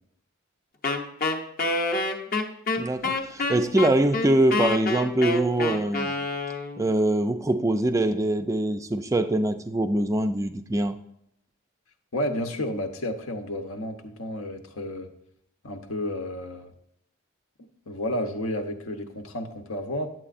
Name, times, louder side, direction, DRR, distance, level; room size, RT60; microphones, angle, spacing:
Wind instrument woodwind instrument, 0.8-6.9, left 3 dB, 45° left, 0.7 m, -27 dB
voice 1, 2.8-6.2 6.8-11.0, right 1 dB, 15° right, 0.3 m, -23 dB
voice 2, 12.1-15.1 15.6-16.7 17.9-20.1, left 1 dB, 85° left, 0.9 m, -31 dB
9.8 x 7.6 x 2.5 m
head